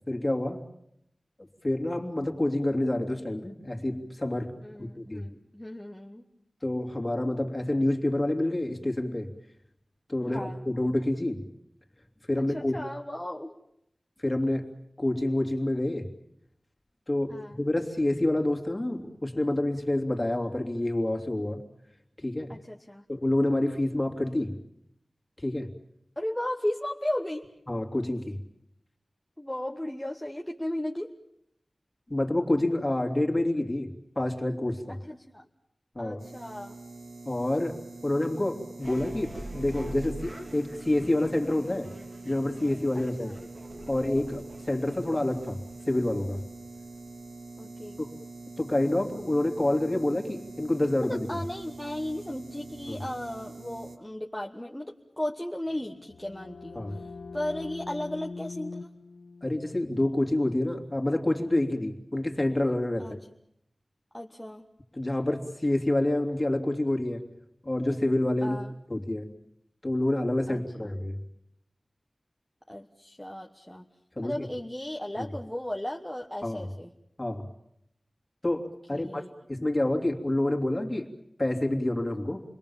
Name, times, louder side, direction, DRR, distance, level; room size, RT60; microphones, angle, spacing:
voice 1, 0.1-0.6 1.6-5.3 6.6-9.3 10.1-11.4 12.3-12.8 14.2-14.7 15.0-16.1 17.1-21.6 22.2-22.5 23.1-24.6 25.4-25.7 27.7-28.4 32.1-35.0 35.9-36.2 37.3-41.9 42.2-43.3 43.9-45.6 45.9-46.4 48.0-48.1 48.6-51.3 52.9-53.0 56.7-57.0 59.4-63.1 65.0-67.2 67.6-68.6 68.9-69.3 69.8-71.2 74.2-74.4 75.2-75.3 76.4-76.7 77.2-77.5 78.4-81.1 81.4-82.4, left 1 dB, 25° left, 2 dB, 2.9 m, -28 dB
voice 2, 4.6-6.3 10.2-10.6 12.4-13.5 17.3-17.6 22.5-23.0 26.2-27.5 29.4-31.1 34.9-35.5 36.0-36.8 42.9-43.3 47.6-48.0 51.0-58.9 63.0-63.2 64.1-64.7 68.4-68.7 70.5-71.0 72.7-73.9 74.2-76.9 78.9-79.3, left 1 dB, 10° left, 1 dB, 1.3 m, -36 dB
sound 1, 36.2-54.0, right 3 dB, 90° right, 1.5 m, -45 dB
sound 2, 38.8-47.4, right 1 dB, 35° right, 2.7 m, -44 dB
sound 3, 55.7-61.3, left 3 dB, 85° left, 1.0 m, -43 dB
28.5 x 21.5 x 7.2 m, 0.76 s
wide cardioid pair, 75°, 0 cm